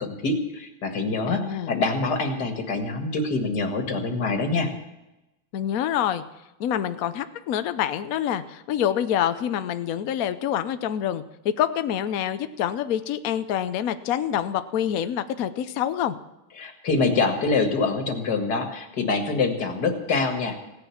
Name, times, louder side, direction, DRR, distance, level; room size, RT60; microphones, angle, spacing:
voice 1, 0.0-4.7 16.6-20.6, left 3 dB, 50° left, 5 dB, 2.2 m, -25 dB
voice 2, 1.3-1.7 5.5-6.2 6.6-16.2, left 10 dB, 80° left, 11 dB, 0.7 m, -26 dB
16.5 x 10.0 x 7.1 m, 0.95 s
omnidirectional pair, 2.4 m